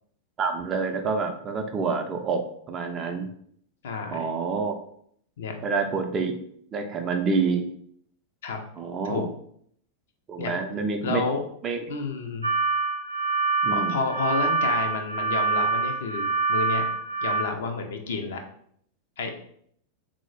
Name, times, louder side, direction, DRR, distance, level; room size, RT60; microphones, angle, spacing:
voice 1, 0.4-2.4 2.7-3.3 4.1-4.7 5.6-6.3 6.7-7.6 8.8-9.3 10.3-11.2 11.6-11.8 13.6-14.0, right 4 dB, 25° right, 5 dB, 0.4 m, -27 dB
voice 2, 3.8-4.3 5.4-5.6 8.4-8.6 9.0-9.3 10.4-11.4 11.9-12.5 13.7-16.8 17.2-18.4 19.2-19.3, left 4 dB, 60° left, 4 dB, 0.5 m, -30 dB
sound 1, 12.4-17.4, right 4 dB, 85° right, 0.4 m, -25 dB
3.7 x 2.0 x 3.1 m, 0.65 s
figure-of-eight pair, 90°, 0 cm